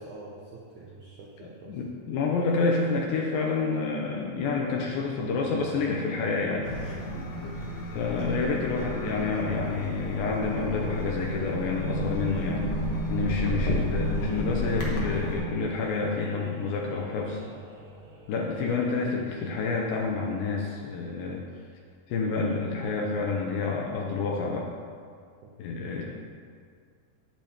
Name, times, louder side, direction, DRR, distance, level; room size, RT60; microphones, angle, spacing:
voice 1, 0.0-1.8 7.4-7.5 17.5-17.6 25.4-25.5, right 2 dB, 80° right, -4 dB, 1.7 m, -46 dB
voice 2, 1.7-6.7 7.9-12.8 13.1-17.4 18.3-21.4 22.1-24.7 25.6-26.1, left 4 dB, 80° left, -1 dB, 2.3 m, -28 dB
sound 1, 4.8-20.7, left 1 dB, 55° right, 2.2 m, -48 dB
sound 2, 6.6-15.4, equal, 65° left, 1.8 m, -31 dB
9.1 x 8.4 x 2.9 m, 2.1 s
omnidirectional pair, 4.5 m